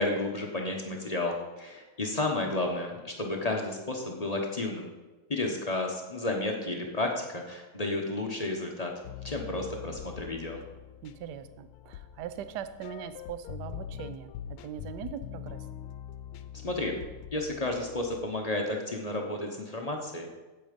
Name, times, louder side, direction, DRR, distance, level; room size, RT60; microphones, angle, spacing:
voice 1, 0.0-4.9 5.3-8.9 9.2-10.6 16.6-17.0 17.3-20.3, left 2 dB, 35° left, 1 dB, 0.6 m, -32 dB
sound 1, 9.0-18.3, left 10 dB, 85° left, 1.5 m, -43 dB
voice 2, 11.0-15.7, right 9 dB, 70° right, 12 dB, 1.0 m, -41 dB
8.6 x 8.4 x 5.2 m, 1.2 s
omnidirectional pair, 2.4 m